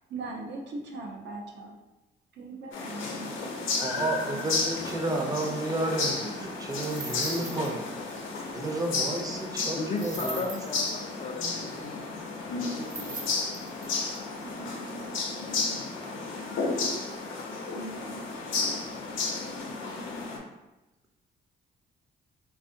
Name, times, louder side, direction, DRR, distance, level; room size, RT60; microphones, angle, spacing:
voice 1, 0.1-1.8 2.3-4.5 14.4-15.8 16.6-16.7 17.7-18.4, right 2 dB, 60° right, 0 dB, 0.7 m, -41 dB
sound 1, 2.7-20.4, left 3 dB, 80° left, 0.7 m, -33 dB
voice 2, 3.8-7.8 8.5-10.4, right 2 dB, 20° right, 1 dB, 0.6 m, -31 dB
sound 2, 6.9-7.8 8.1-8.2 10.0-10.9 12.8-14.2, right 3 dB, 40° right, 1.0 m, -40 dB
voice 3, 9.8-11.9 12.6-14.0, left 3 dB, 35° left, 3 dB, 0.4 m, -36 dB
3.5 x 2.3 x 2.6 m, 1.0 s
cardioid pair, 90°, 20 cm